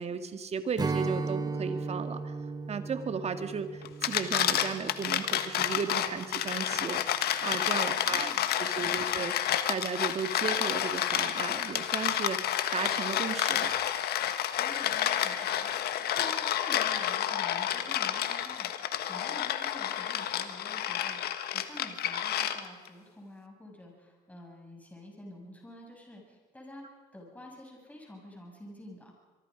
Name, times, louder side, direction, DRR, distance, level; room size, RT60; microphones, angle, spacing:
voice 1, 0.0-2.3 2.7-8.3 8.6-9.4 9.7-12.4 12.7-13.7, right 6 dB, 40° right, 9 dB, 1.9 m, -35 dB
Strum, 0.8-6.2, right 4 dB, 25° right, 1.1 m, -36 dB
sound 1, 3.8-22.9, left 11 dB, 70° left, 1.5 m, -30 dB
voice 2, 8.0-8.5 8.8-9.2 14.6-26.8 27.1-29.1, left 1 dB, 10° left, 0 dB, 6.8 m, -49 dB
24.5 x 23.5 x 5.1 m, 1.3 s
cardioid pair, 110°, 17 cm